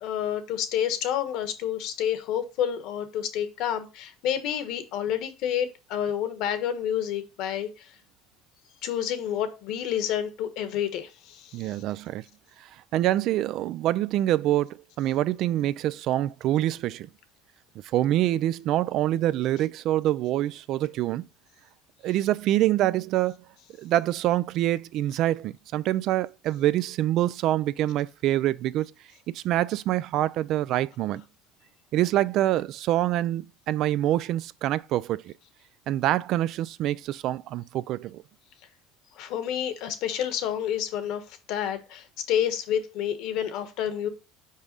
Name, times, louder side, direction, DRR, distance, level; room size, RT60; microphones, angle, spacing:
voice 1, 0.0-7.7 8.8-11.5 39.2-41.2 41.5-44.1, left 9 dB, 60° left, 1.2 m, -29 dB
voice 2, 11.5-12.2 12.9-17.1 17.9-21.2 22.0-23.3 23.8-28.9 29.3-31.2 31.9-35.3 35.9-38.2, right 13 dB, 55° right, 0.3 m, -25 dB
5.5 x 4.8 x 3.9 m
cardioid pair, 140°, 0 cm